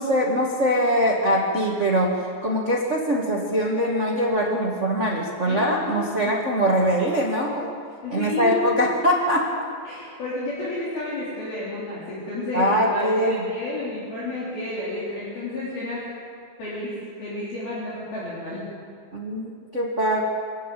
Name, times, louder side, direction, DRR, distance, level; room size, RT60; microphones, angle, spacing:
voice 1, 0.0-7.7 8.1-9.5 12.5-13.4 19.1-20.2, equal, 80° right, -2 dB, 0.6 m, -22 dB
voice 2, 5.5-6.3 8.0-8.9 9.9-16.1 16.6-18.7, left 2 dB, 60° left, -7 dB, 5.4 m, -31 dB
26.0 x 13.0 x 9.1 m, 2.2 s
omnidirectional pair, 5.1 m